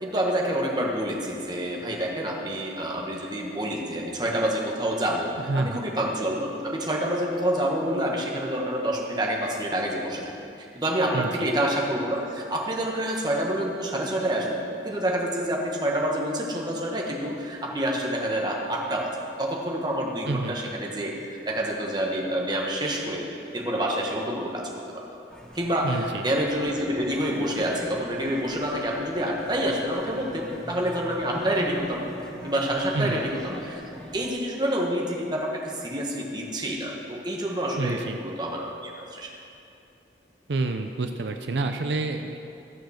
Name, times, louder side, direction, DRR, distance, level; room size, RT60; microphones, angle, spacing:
voice 1, 0.0-10.3 10.6-14.6 14.8-19.1 19.4-23.3 23.5-24.7 25.5-32.1 32.4-39.3, right 1 dB, 25° right, -1 dB, 1.4 m, -28 dB
voice 2, 5.5-5.8 11.1-11.5 20.3-20.5 25.8-26.2 32.9-33.2 37.8-38.2 40.5-42.4, right 3 dB, 75° right, 6 dB, 0.6 m, -28 dB
sound 1, 25.3-34.3, equal, 5° left, 1.0 m, -42 dB
14.5 x 6.4 x 6.5 m, 2.7 s
head